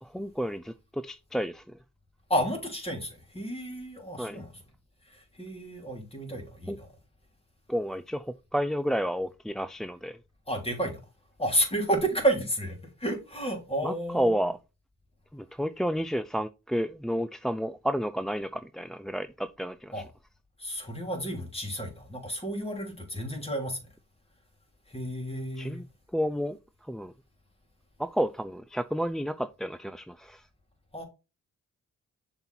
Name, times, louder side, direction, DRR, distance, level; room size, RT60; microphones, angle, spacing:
voice 1, 0.0-1.6 4.2-4.4 6.7-6.8 7.7-10.2 13.8-14.6 15.3-20.0 25.6-25.8 26.1-26.6 26.9-27.1 28.0-30.4, equal, ahead, 0.4 m, -31 dB
voice 2, 2.3-4.5 5.1-6.9 10.5-11.0 11.4-14.3 19.9-20.1 20.6-23.8 24.9-25.8 30.9-31.0, right 1 dB, 20° left, 3.2 m, -31 dB
6.7 x 4.4 x 4.0 m
cardioid pair, 70°, 31 cm